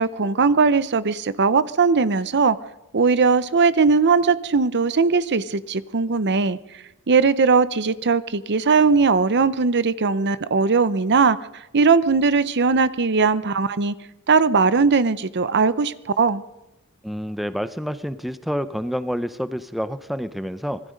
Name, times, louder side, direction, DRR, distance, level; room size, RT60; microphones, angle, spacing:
voice 1, 0.0-2.6 2.9-6.6 7.1-11.4 11.7-13.9 14.3-16.4, right 4 dB, 50° right, 16 dB, 0.7 m, -19 dB
voice 2, 17.0-20.8, equal, ahead, 12 dB, 0.7 m, -28 dB
25.5 x 20.0 x 5.2 m, 0.94 s
head